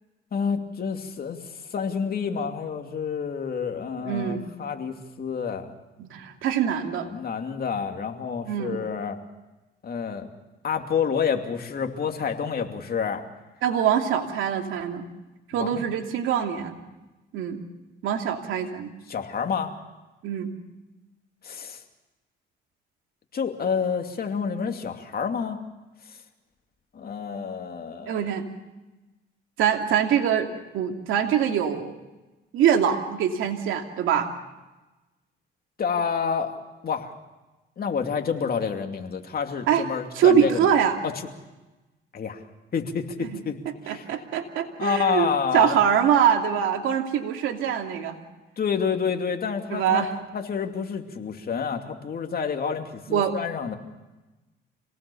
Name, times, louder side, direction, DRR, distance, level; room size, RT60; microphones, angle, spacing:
voice 1, 0.3-1.4 1.7-5.7 7.1-9.2 9.8-10.3 10.6-13.2 15.6-15.9 19.1-19.7 21.4-21.8 23.3-25.6 26.9-28.3 35.8-36.5 36.8-37.1 37.8-40.7 41.0-41.1 42.1-42.4 42.7-43.6 43.8-44.1 44.8-45.8 48.6-50.1 50.3-53.8, left 6 dB, 50° left, 4 dB, 2.7 m, -28 dB
voice 2, 4.0-4.4 6.0-7.1 8.5-8.8 13.6-15.1 15.5-16.8 17.3-17.6 18.0-18.9 20.2-20.5 28.1-28.4 29.6-30.5 30.7-31.9 32.5-34.3 39.7-39.8 40.1-41.0 43.9-48.2 49.7-50.1 53.1-53.4, right 8 dB, 90° right, 3 dB, 2.7 m, -23 dB
26.5 x 18.5 x 7.1 m, 1.1 s
cardioid pair, 90°, 20 cm